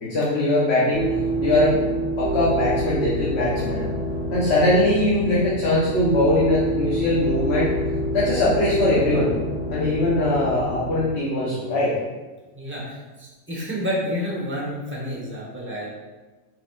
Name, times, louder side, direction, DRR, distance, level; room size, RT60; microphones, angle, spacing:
voice 1, 0.0-1.1 1.4-1.8 2.2-3.9 4.3-7.7 8.1-9.3 9.7-11.9, left 1 dB, 60° left, -7 dB, 1.3 m, -21 dB
sound 1, 0.9-11.0, right 1 dB, 80° right, 1.4 m, -27 dB
voice 2, 12.5-15.9, equal, 10° right, -4 dB, 1.4 m, -29 dB
6.6 x 6.3 x 2.5 m, 1.2 s
omnidirectional pair, 1.2 m